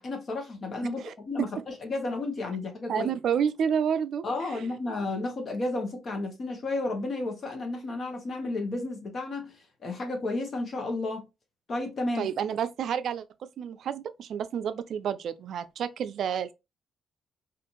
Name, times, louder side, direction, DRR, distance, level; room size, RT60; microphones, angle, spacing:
voice 1, 0.0-3.1 4.2-11.3 11.7-12.3, left 2 dB, 45° left, 0.9 m, -32 dB
voice 2, 2.9-4.7 12.2-13.2 13.6-16.5, right 8 dB, 65° right, 0.3 m, -30 dB
2.6 x 2.4 x 2.9 m
cardioid pair, 90°, 0 cm